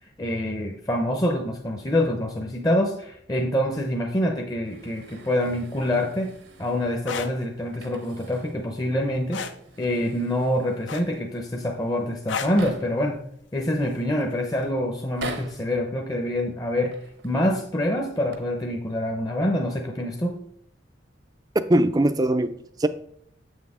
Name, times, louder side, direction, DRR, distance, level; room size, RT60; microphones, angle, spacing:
voice 1, 0.2-6.3 6.6-9.4 9.8-13.2 13.5-17.0 17.2-20.4, left 1 dB, 20° left, 1 dB, 0.6 m, -26 dB
sound 1, 4.6-7.1 7.6-8.7 8.9-9.0 9.5-11.0 11.8-11.9 12.1-13.1 13.7-14.2 15.0-15.7 16.8-17.4 18.1-18.4, right 2 dB, 85° right, 1.1 m, -42 dB
sound 2, 6.9-7.3 9.3-9.6 10.9-11.3 12.3-12.6 14.0-14.2, left 6 dB, 85° left, 0.6 m, -31 dB
voice 2, 21.7-22.9, right 1 dB, 20° right, 11 dB, 0.3 m, -21 dB
7.2 x 6.3 x 3.6 m, 0.67 s
head